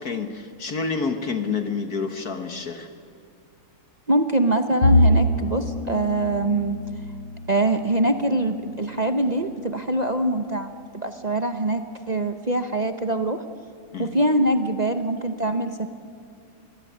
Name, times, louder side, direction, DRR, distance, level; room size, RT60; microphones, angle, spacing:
voice 1, 0.0-2.9 13.9-14.1, left 5 dB, 50° left, 8 dB, 1.6 m, -28 dB
voice 2, 4.1-6.8 7.5-13.4 14.0-15.9, right 1 dB, 50° right, 7 dB, 0.4 m, -23 dB
Bowed string instrument, 4.8-8.3, left 1 dB, 85° left, 3.5 m, -23 dB
24.5 x 20.0 x 9.3 m, 2.4 s
omnidirectional pair, 2.2 m